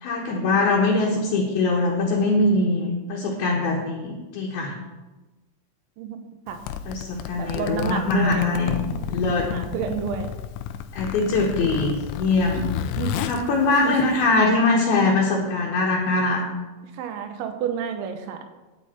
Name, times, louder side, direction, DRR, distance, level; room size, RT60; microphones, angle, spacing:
voice 1, 0.0-4.7 6.9-8.7 9.1-9.5 10.9-12.7 13.3-16.5, left 3 dB, 70° left, -2 dB, 2.7 m, -22 dB
Zipper (clothing), 6.5-14.5, left 10 dB, 90° left, 3.1 m, -32 dB
voice 2, 7.4-8.5 8.9-9.0 9.5-10.3 12.5-12.7 13.0-13.2 13.8-14.0 16.9-18.4, right 7 dB, 80° right, 7 dB, 3.3 m, -30 dB
11.0 x 9.3 x 4.3 m, 1.1 s
omnidirectional pair, 5.4 m